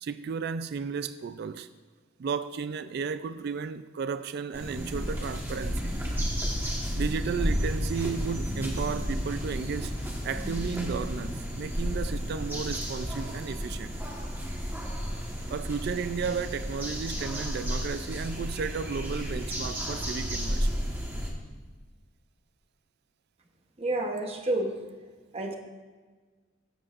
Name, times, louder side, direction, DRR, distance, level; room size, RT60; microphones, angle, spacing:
voice 1, 0.0-1.7 2.2-5.9 6.9-9.9 10.2-14.0 15.5-20.8, right 5 dB, 55° right, 0.3 m, -33 dB
sound 1, 4.5-21.3, equal, 10° right, 1.3 m, -32 dB
voice 2, 23.8-24.7 25.3-25.6, right 2 dB, 30° right, 1.0 m, -29 dB
15.5 x 7.7 x 2.5 m
head